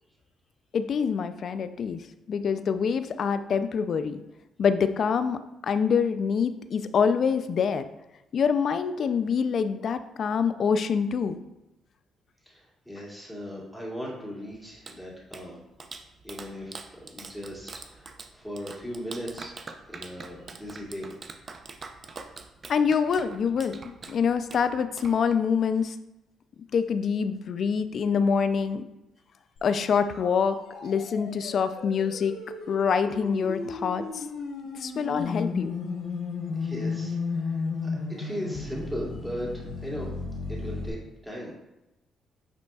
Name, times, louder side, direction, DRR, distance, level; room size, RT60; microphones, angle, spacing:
voice 1, 0.7-2.0 2.3-4.2 4.6-7.8 8.3-11.4 22.7-26.0 26.7-28.8 29.6-30.6 30.8-32.3 32.7-34.3 34.8-35.8, left 6 dB, 55° left, 11 dB, 0.4 m, -25 dB
voice 2, 12.5-15.6 16.2-19.5 19.9-21.1 36.6-37.9 38.2-40.1 40.5-41.0 41.2-41.5, equal, ahead, -5 dB, 2.4 m, -38 dB
Clapping, 14.5-25.7, right 4 dB, 40° right, 0.6 m, -45 dB
sound 1, 29.6-40.9, left 4 dB, 85° left, 1.2 m, -34 dB
9.1 x 5.1 x 2.4 m, 0.96 s
cardioid pair, 90°, 0 cm